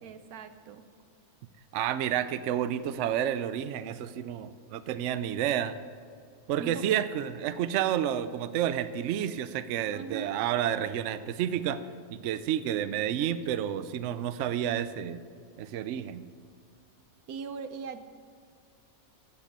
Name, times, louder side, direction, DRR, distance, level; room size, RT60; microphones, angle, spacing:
voice 1, 0.0-0.8 6.6-7.0 9.9-10.4 17.3-18.0, right 5 dB, 90° right, 10 dB, 1.3 m, -40 dB
voice 2, 1.7-5.8 6.5-11.8 12.1-15.2 15.6-16.3, right 10 dB, 65° right, 13 dB, 0.8 m, -30 dB
15.0 x 8.1 x 6.7 m, 2.2 s
omnidirectional pair, 1.5 m